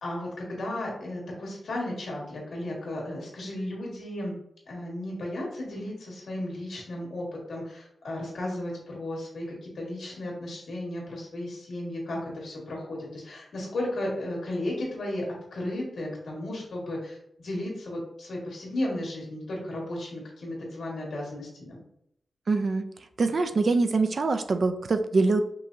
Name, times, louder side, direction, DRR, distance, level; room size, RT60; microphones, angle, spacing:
voice 1, 0.0-4.3 4.7-15.3 15.5-21.8, left 1 dB, 85° left, -2 dB, 1.7 m, -34 dB
voice 2, 22.5-22.8 23.2-25.4, right 3 dB, 50° right, 8 dB, 0.4 m, -24 dB
5.3 x 2.9 x 2.7 m, 0.72 s
wide cardioid pair, 110°, 0 cm